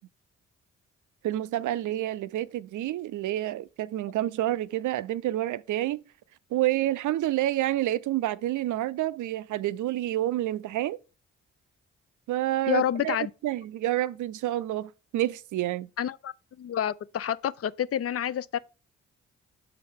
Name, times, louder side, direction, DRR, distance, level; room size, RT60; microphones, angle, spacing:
voice 1, 1.2-6.0 6.5-11.0 12.3-13.2 13.4-15.9, right 14 dB, 60° right, 0.4 m, -28 dB
voice 2, 12.7-13.3 16.0-18.6, left 10 dB, 45° left, 0.4 m, -29 dB
6.9 x 4.7 x 3.5 m
hypercardioid pair, 40°, 34 cm